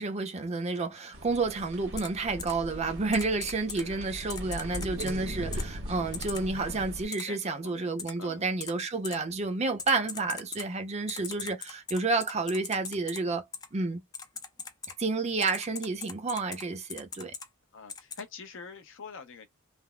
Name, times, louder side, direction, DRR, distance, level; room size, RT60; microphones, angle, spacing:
voice 1, 0.0-13.4 13.7-14.0 15.0-17.3, right 3 dB, 30° right, 0.6 m, -30 dB
sound 1, 1.1-7.1, equal, 70° right, 1.2 m, -39 dB
Typing, 2.0-2.1 2.4-2.5 3.1-3.8 4.3-5.1 5.5-5.6 6.1-6.4 7.1-7.2 8.0-8.1 8.6-8.7 9.0-9.2 9.8-10.7 11.1-13.2 13.5-13.7 14.1-14.9 15.4-16.6 16.9-17.5 17.9-18.2, left 5 dB, 20° left, 0.4 m, -39 dB
voice 2, 3.7-4.1 7.3-8.5 17.7-19.5, left 5 dB, 60° left, 0.7 m, -45 dB
3.3 x 2.0 x 2.2 m
head